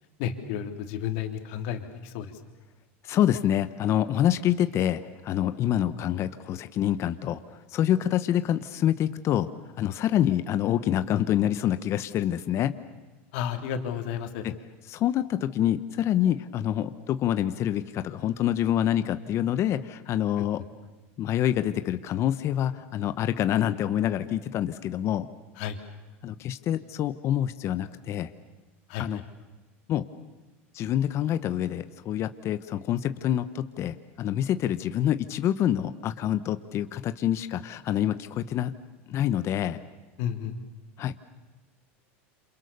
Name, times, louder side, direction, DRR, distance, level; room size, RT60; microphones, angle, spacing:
voice 1, 0.2-2.4 13.3-14.4 20.4-20.5 25.6-25.8 28.9-29.2 40.2-40.6, left 9 dB, 65° left, 6 dB, 3.3 m, -32 dB
voice 2, 3.0-9.5 9.8-12.7 14.4-14.5 14.9-20.6 21.2-25.3 26.2-28.3 29.0-29.2 29.9-30.1 30.7-38.7 39.1-39.8 41.0-41.1, left 11 dB, 40° left, 12 dB, 1.1 m, -26 dB
29.0 x 27.5 x 6.9 m, 1.2 s
supercardioid pair, 115°, 7 cm